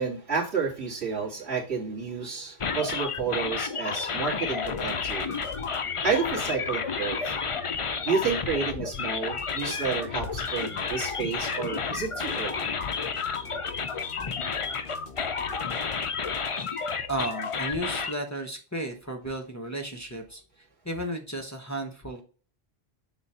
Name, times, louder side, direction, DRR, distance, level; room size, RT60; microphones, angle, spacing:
voice 1, 0.0-5.3 6.0-7.3 8.0-12.7, right 5 dB, 90° right, -4 dB, 2.3 m, -30 dB
sound 1, 2.6-18.1, left 5 dB, 40° left, 0.5 m, -31 dB
sound 2, 4.6-17.6, left 5 dB, 60° left, 1.0 m, -45 dB
voice 2, 17.1-22.2, right 1 dB, 15° left, 2 dB, 0.8 m, -34 dB
7.2 x 2.4 x 5.5 m, 0.38 s
omnidirectional pair, 1.1 m